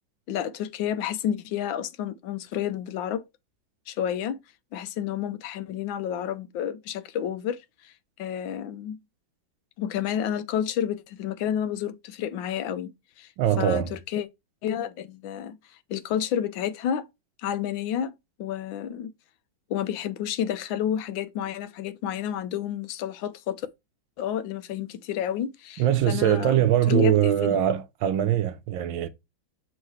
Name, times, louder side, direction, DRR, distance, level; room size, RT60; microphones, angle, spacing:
voice 1, 0.3-3.2 3.9-4.4 4.7-7.9 8.2-9.0 9.8-12.9 13.2-13.3 13.6-14.3 14.6-15.6 15.9-17.1 17.4-19.1 19.7-23.7 24.2-27.6, left 9 dB, 80° left, 1.4 m, -30 dB
voice 2, 13.4-13.9 25.8-29.1, right 11 dB, 85° right, 1.5 m, -22 dB
6.3 x 4.7 x 3.1 m
omnidirectional pair, 2.1 m